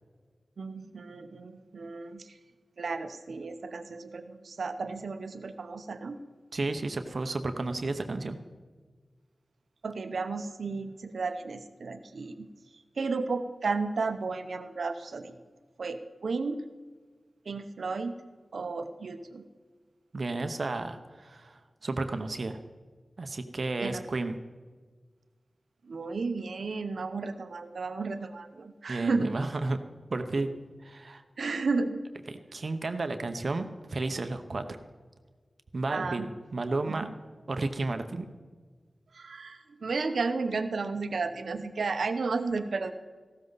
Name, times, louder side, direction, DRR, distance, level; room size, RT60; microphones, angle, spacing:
voice 1, 0.6-2.3 2.8-6.2 9.8-12.5 13.0-15.4 15.8-16.6 17.5-18.1 18.5-19.4 23.8-24.0 25.8-29.4 31.4-32.0 35.9-36.3 36.9-37.0 39.1-42.9, right 4 dB, 90° right, 9 dB, 0.9 m, -33 dB
voice 2, 6.5-8.4 20.1-22.6 23.2-24.3 28.9-29.8 30.1-30.5 30.8-31.2 32.3-34.8 35.7-37.1 37.5-38.3, right 2 dB, 60° right, 8 dB, 0.9 m, -32 dB
15.5 x 13.0 x 4.0 m, 1.5 s
wide cardioid pair, 85°, 0 cm